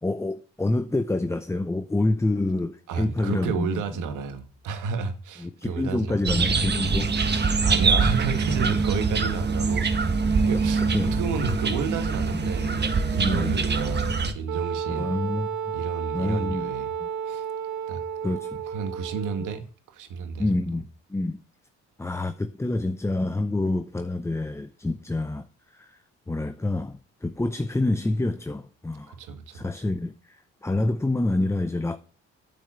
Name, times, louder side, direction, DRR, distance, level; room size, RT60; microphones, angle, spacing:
voice 1, 0.0-3.8 5.4-7.4 10.7-11.1 13.2-13.5 14.9-15.8 16.1-16.7 17.0-17.1 18.2-18.6 20.4-21.4 22.0-25.5 25.7-26.0 26.3-29.2 29.5-32.0, left 2 dB, 10° left, 0.7 m, -27 dB
voice 2, 2.9-6.5 7.6-14.1 14.3-15.2 15.7-16.9 17.2-17.5 17.9-18.0 18.7-20.5 29.1-29.8, right 6 dB, 85° right, 1.9 m, -31 dB
sound 1, 6.3-14.3, right 4 dB, 35° right, 1.4 m, -24 dB
Wind instrument woodwind instrument, 14.5-19.6, right 8 dB, 70° right, 1.4 m, -32 dB
8.9 x 5.4 x 7.7 m
cardioid pair, 90°, 30 cm